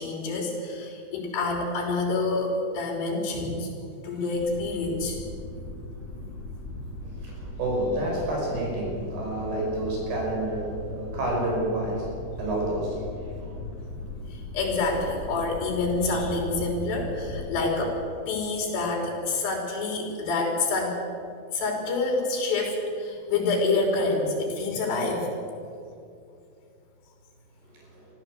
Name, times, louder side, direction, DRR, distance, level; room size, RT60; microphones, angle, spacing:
voice 1, 0.0-3.7 4.0-5.2 13.6-13.7 14.3-18.0 18.3-21.0 21.5-25.3, left 3 dB, 75° left, 1 dB, 5.5 m, -27 dB
sound 1, 4.3-17.4, left 2 dB, 50° left, 5.0 m, -39 dB
voice 2, 7.0-12.1 12.4-13.6 27.9-28.1, right 1 dB, 65° right, -2 dB, 7.7 m, -29 dB
23.5 x 14.5 x 7.9 m, 2.5 s
omnidirectional pair, 4.9 m